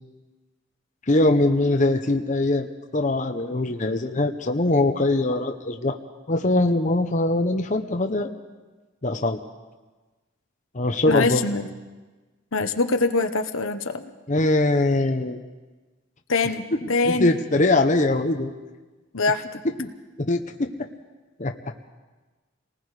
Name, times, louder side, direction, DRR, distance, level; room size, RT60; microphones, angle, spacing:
voice 1, 1.1-2.7 2.9-6.0 6.3-8.3 9.0-9.4 10.7-11.4 14.3-15.4 16.8-18.5 19.8-19.9 20.2-20.9 21.4-21.6, left 2 dB, 35° left, 5 dB, 0.9 m, -22 dB
voice 2, 11.1-11.7 12.5-14.1 16.3-17.3 19.1-19.6, left 3 dB, 80° left, 7 dB, 1.2 m, -24 dB
28.5 x 19.5 x 4.9 m, 1.2 s
head